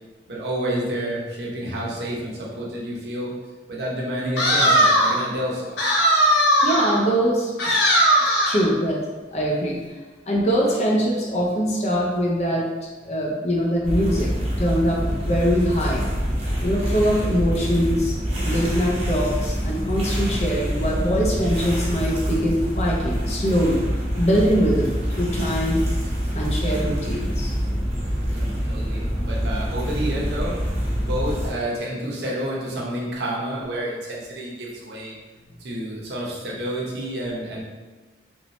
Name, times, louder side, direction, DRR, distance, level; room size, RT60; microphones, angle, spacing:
voice 1, 0.3-3.3 3.7-5.8 28.3-35.1 35.6-37.6, right 1 dB, 70° right, -4 dB, 0.8 m, -29 dB
sound 1, 4.4-5.3 5.8-7.0 7.6-8.7, equal, 85° left, 0.6 m, -18 dB
voice 2, 6.6-7.9 8.2-9.0 9.3-10.0 10.3-12.7 13.0-14.3 14.6-16.1 16.6-18.1 18.4-23.8 24.2-25.8 26.3-27.5, equal, 40° left, -2 dB, 0.6 m, -23 dB
sound 2, 13.8-31.5, equal, 35° right, 0.7 m, -26 dB
3.1 x 2.6 x 3.0 m, 1.3 s
head